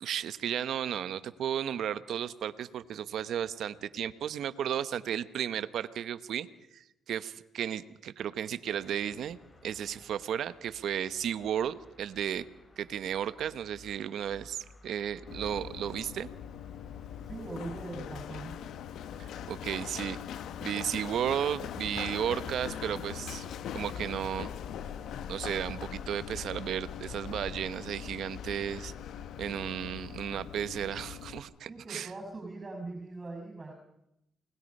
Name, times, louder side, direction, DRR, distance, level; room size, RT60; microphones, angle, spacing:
voice 1, 0.0-9.4 9.6-12.4 12.8-16.3 19.2-20.2 20.6-23.5 23.7-24.5 25.3-28.9 29.4-32.1, right 9 dB, 70° right, 13 dB, 1.1 m, -34 dB
sound 1, 8.7-26.2, left 2 dB, 35° left, 4.2 m, -55 dB
Run, 15.3-31.4, left 9 dB, 75° left, 1.0 m, -41 dB
voice 2, 17.2-18.6 31.7-33.7, right 2 dB, 30° right, 3 dB, 6.1 m, -41 dB
29.5 x 20.5 x 5.5 m, 0.84 s
cardioid pair, 90°, 0 cm